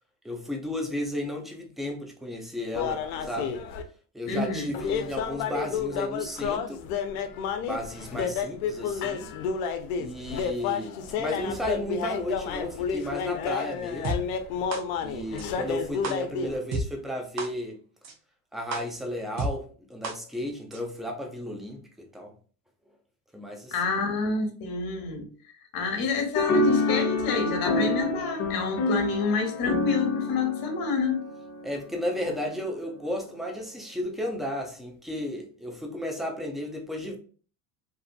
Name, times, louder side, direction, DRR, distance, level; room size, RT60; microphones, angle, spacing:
voice 1, 0.2-3.6 4.1-6.8 7.6-9.3 10.0-14.3 15.0-17.8 18.5-22.3 23.3-23.7 31.6-37.2, equal, ahead, 0.5 m, -34 dB
sound 1, 2.7-3.8 4.7-16.6, left 6 dB, 75° left, 0.6 m, -31 dB
voice 2, 4.3-4.7 23.7-25.3 25.7-31.2, left 4 dB, 50° left, 1.0 m, -28 dB
sound 2, 14.0-14.1 14.7-14.8 15.4-15.5 16.0-16.1 16.7-16.8 17.4-17.5 18.0-18.1 18.7-18.8 19.4-19.5 20.0-20.1 20.7-20.8, right 2 dB, 40° right, 0.7 m, -29 dB
sound 3, 26.3-31.9, left 2 dB, 35° left, 0.8 m, -27 dB
2.6 x 2.5 x 2.4 m
hypercardioid pair, 90°, 44 cm